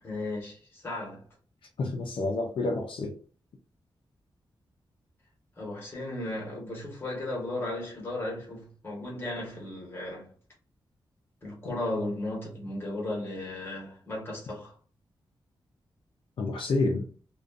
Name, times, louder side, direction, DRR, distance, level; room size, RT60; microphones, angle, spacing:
voice 1, 0.0-1.3 5.6-10.3 11.4-14.7, left 1 dB, 25° left, 1.2 m, -35 dB
voice 2, 1.8-3.2 11.6-11.7 16.4-17.1, left 2 dB, 75° left, 0.5 m, -29 dB
2.5 x 2.3 x 2.4 m
wide cardioid pair, 155°, 9 cm